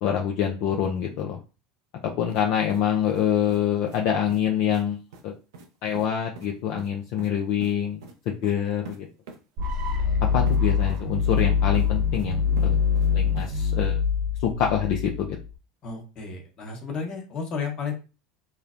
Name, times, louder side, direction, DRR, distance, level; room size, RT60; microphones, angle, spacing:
voice 1, 0.0-1.4 2.0-5.0 5.2-5.3 5.8-9.1 10.3-12.8 13.1-14.0 14.4-15.4, left 9 dB, 60° left, 1 dB, 0.4 m, -26 dB
sound 1, 2.3-2.4 2.7-3.6 3.9-4.0 4.3-4.4 4.7-4.8 5.1-5.2 5.5-5.7 5.9-6.1 6.4-6.5 6.8-7.3 7.6-7.7 8.0-8.1 8.4-8.6 8.9-9.0 9.3-9.4 10.5-10.6 10.9-11.5 11.7-12.3 12.6-13.1 13.4-13.5, right 5 dB, 80° right, 0.5 m, -41 dB
sound 2, 9.6-15.5, left 6 dB, 55° right, 1.0 m, -24 dB
voice 2, 15.8-17.9, left 5 dB, 40° left, 1 dB, 1.1 m, -32 dB
3.0 x 2.0 x 2.5 m, 0.32 s
hypercardioid pair, 90°, 2 cm